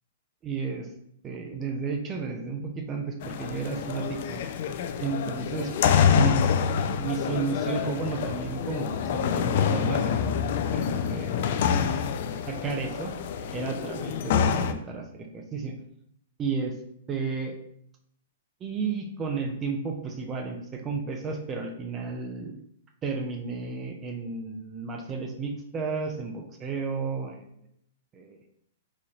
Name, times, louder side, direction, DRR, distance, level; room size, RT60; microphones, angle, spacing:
voice 1, 0.4-0.9 1.2-4.4 5.0-5.7 6.1-10.2 10.7-11.5 12.5-13.1 13.5-15.7 16.4-16.8 17.1-17.5 18.6-22.6 23.0-27.4 28.1-28.4, right 4 dB, 20° right, 3 dB, 0.5 m, -32 dB
sound 1, 3.2-14.7, left 7 dB, 55° left, 0.3 m, -26 dB
4.0 x 2.9 x 2.6 m, 0.72 s
hypercardioid pair, 145°, 0 cm